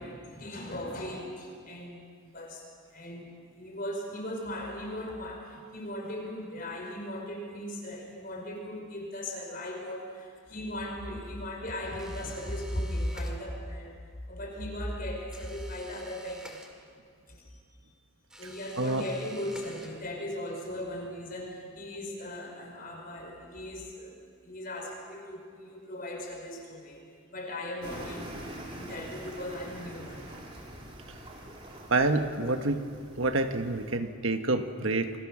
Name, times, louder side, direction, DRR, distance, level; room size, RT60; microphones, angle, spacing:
voice 1, 0.0-2.0 2.3-2.6 2.9-3.3 3.6-13.9 14.3-16.8 17.3-17.5 18.4-24.1 24.4-27.0 27.3-30.3, left 1 dB, 40° left, 1 dB, 5.0 m, -38 dB
sound 1, 12.0-13.8 15.3-17.2 18.3-20.3, equal, 5° right, 2.1 m, -51 dB
sound 2, 27.8-34.0, right 1 dB, 25° right, 3.3 m, -44 dB
voice 2, 31.9-32.8 33.2-35.1, right 2 dB, 70° right, 7 dB, 1.5 m, -27 dB
28.5 x 24.0 x 6.3 m, 2.1 s
head